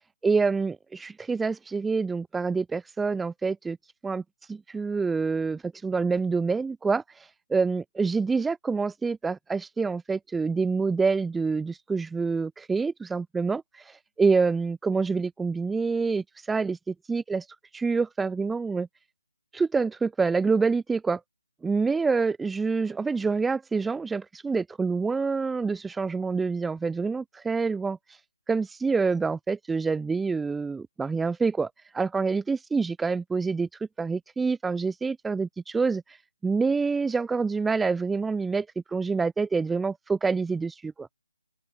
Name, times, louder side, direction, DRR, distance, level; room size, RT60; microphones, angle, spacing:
voice 1, 0.2-3.8 4.0-4.2 4.5-16.8 17.1-17.4 17.7-18.9 19.5-21.2 21.6-28.0 28.5-33.7 34.0-36.0 36.4-41.1, right 4 dB, 5° right, 0.7 m, -27 dB
open air
hypercardioid pair, 175°, 0 cm